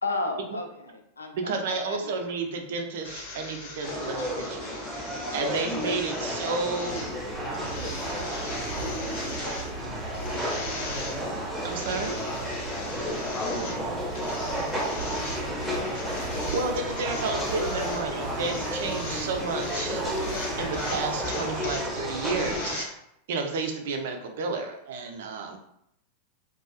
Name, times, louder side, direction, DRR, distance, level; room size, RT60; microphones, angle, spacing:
voice 1, 0.0-2.2 4.6-5.0 5.3-5.6 9.4-9.7 10.1-10.9, left 2 dB, 75° left, 4 dB, 0.3 m, -36 dB
voice 2, 1.3-5.0 5.3-7.1 7.5-7.7 11.6-12.2 16.5-22.9 23.3-25.6, right 4 dB, 55° right, 4 dB, 0.4 m, -32 dB
sound 1, 3.0-22.8, left 3 dB, 55° left, 0.7 m, -40 dB
sound 2, 3.8-22.7, equal, 5° right, 0.6 m, -32 dB
voice 3, 5.0-6.0 7.7-8.3 10.1-10.4 12.7-14.8 16.0-16.5, left 1 dB, 20° left, -2 dB, 0.8 m, -38 dB
sound 3, 6.9-22.6, right 2 dB, 85° right, 0.7 m, -40 dB
2.4 x 2.3 x 2.3 m, 0.76 s
figure-of-eight pair, 90°, 0 cm